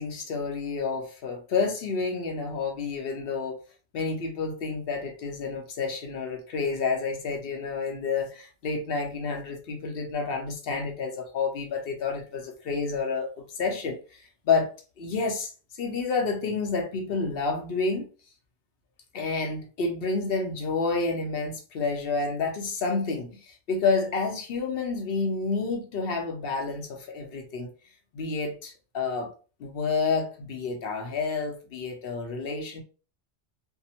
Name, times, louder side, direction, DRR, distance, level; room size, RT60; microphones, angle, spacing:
voice 1, 0.0-3.6 3.9-14.7 15.0-15.5 15.8-18.1 19.1-27.7 28.1-29.3 29.6-32.8, left 4 dB, 65° left, 0.8 m, -29 dB
2.7 x 2.1 x 2.8 m
omnidirectional pair, 1.1 m